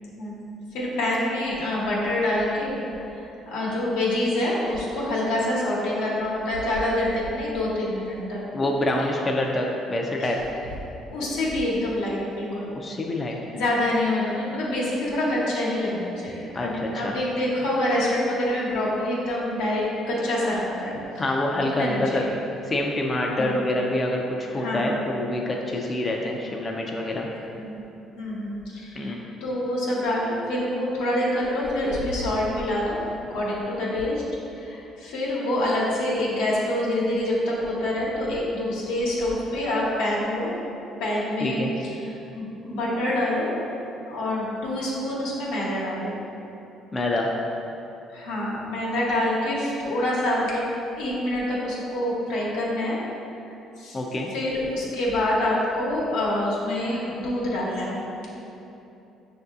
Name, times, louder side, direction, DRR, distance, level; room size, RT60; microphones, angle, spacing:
voice 1, 0.2-2.8 3.1-8.4 10.2-10.3 11.1-12.7 13.5-21.0 21.7-22.2 23.3-23.5 24.5-25.0 27.2-27.8 28.2-33.0 33.3-34.2 34.6-40.5 41.0-43.5 44.1-46.1 48.1-50.6 51.0-53.0 53.8-54.0 54.3-58.3, left 1 dB, 90° left, -6 dB, 0.9 m, -26 dB
voice 2, 8.5-10.4 12.7-13.4 16.5-17.1 21.2-22.3 22.7-27.3 29.0-29.2 41.4-41.7 46.9-47.3 53.9-54.3, left 1 dB, 30° left, 0 dB, 0.4 m, -26 dB
6.2 x 2.6 x 2.3 m, 2.9 s
supercardioid pair, 80°, 0 cm